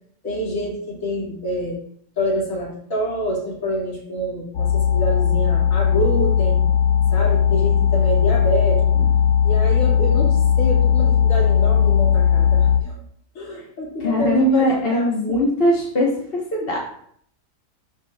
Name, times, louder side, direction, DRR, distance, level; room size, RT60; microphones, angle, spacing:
voice 1, 0.2-1.8 2.2-6.6 7.1-8.8 9.4-13.0 13.3-15.4, equal, 50° left, -5 dB, 2.8 m, -26 dB
sound 1, 4.5-12.8, left 8 dB, 70° left, 1.3 m, -17 dB
voice 2, 14.0-16.1 16.5-16.8, left 1 dB, 35° left, -3 dB, 1.5 m, -20 dB
12.5 x 5.4 x 2.4 m, 0.65 s
omnidirectional pair, 1.8 m